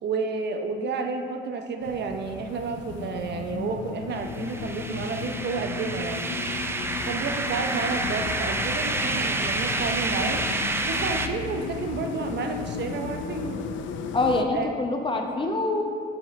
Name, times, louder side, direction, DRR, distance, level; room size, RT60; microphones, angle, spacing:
voice 1, 0.0-6.3 7.1-10.4 10.8-13.6 14.5-14.7, right 4 dB, 60° right, 5 dB, 0.7 m, -31 dB
sound 1, 1.8-14.4, left 6 dB, 75° left, 0.5 m, -35 dB
sound 2, 4.2-11.3, right 2 dB, 10° right, 0.4 m, -29 dB
voice 2, 14.1-15.8, left 2 dB, 25° left, 3 dB, 0.8 m, -25 dB
7.2 x 6.8 x 3.1 m, 2.4 s
cardioid pair, 90°, 20 cm